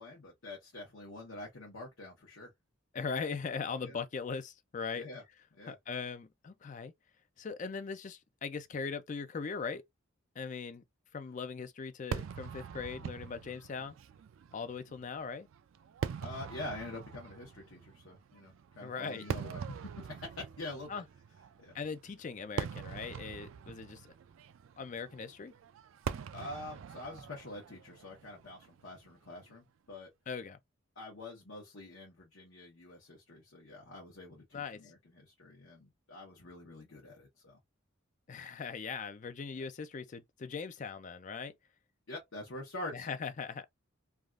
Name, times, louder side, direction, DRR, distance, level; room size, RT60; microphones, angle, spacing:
voice 1, 0.0-2.5 3.8-4.0 4.9-5.2 5.5-5.8 16.2-21.0 21.6-21.7 26.3-30.1 31.0-37.6 39.5-39.6 42.1-43.1, left 2 dB, 65° left, 0.9 m, -46 dB
voice 2, 2.9-5.1 5.6-6.9 7.4-9.8 10.4-10.8 11.1-14.0 14.5-15.5 18.8-19.3 20.9-21.0 21.7-24.1 24.8-25.5 30.3-30.6 34.5-34.9 38.3-41.5 42.9-43.7, left 5 dB, 35° left, 0.4 m, -40 dB
Fireworks, 12.1-29.4, right 7 dB, 70° right, 0.3 m, -44 dB
3.4 x 2.3 x 2.4 m
head